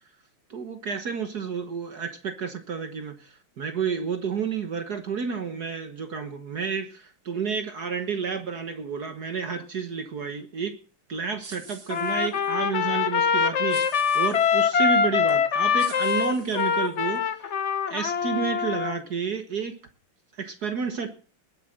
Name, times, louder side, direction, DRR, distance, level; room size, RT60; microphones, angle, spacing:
voice 1, 0.5-10.8 11.1-17.2 17.9-19.7 20.4-21.1, right 6 dB, 50° right, 8 dB, 1.7 m, -30 dB
sound 1, 11.4-12.5 13.7-14.7 15.3-15.4 15.8-17.2, right 4 dB, 65° right, 3.4 m, -46 dB
Trumpet, 11.9-19.0, left 6 dB, 50° left, 0.9 m, -24 dB
19.5 x 8.3 x 6.5 m, 0.39 s
omnidirectional pair, 2.3 m